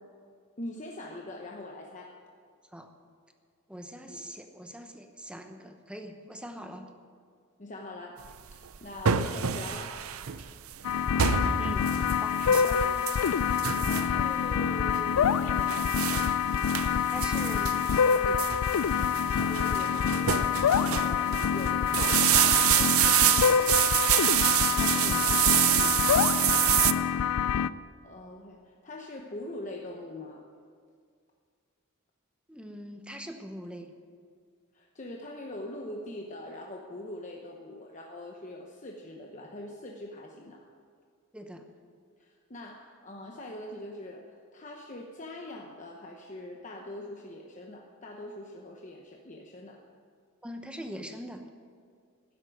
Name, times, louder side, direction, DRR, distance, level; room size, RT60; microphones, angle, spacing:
voice 1, 0.6-2.2 4.0-4.2 7.6-10.1 12.6-13.0 13.8-16.1 19.3-24.0 28.0-30.5 34.7-40.6 42.2-49.8, left 1 dB, 35° left, 1 dB, 1.0 m, -43 dB
voice 2, 3.7-6.9 11.6-12.9 17.1-18.5 24.7-26.1 32.5-33.9 41.3-41.7 50.4-51.4, equal, 5° right, 5 dB, 0.9 m, -42 dB
sound 1, 8.2-26.9, right 11 dB, 75° right, 0.6 m, -27 dB
sound 2, 10.8-27.7, left 7 dB, 85° left, 0.4 m, -26 dB
12.5 x 9.8 x 9.3 m, 2.1 s
head